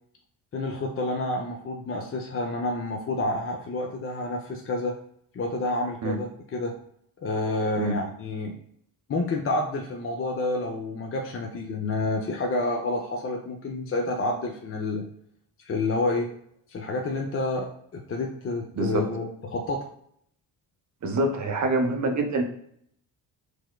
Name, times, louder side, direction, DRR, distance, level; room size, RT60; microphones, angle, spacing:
voice 1, 0.5-5.0 5.3-6.8 7.2-8.5 9.1-15.0 15.7-16.3 16.7-19.9, left 2 dB, 30° left, 1 dB, 0.5 m, -29 dB
voice 2, 21.0-22.4, right 2 dB, 35° right, 4 dB, 0.7 m, -25 dB
4.5 x 2.1 x 2.2 m, 0.68 s
supercardioid pair, 50°, 48 cm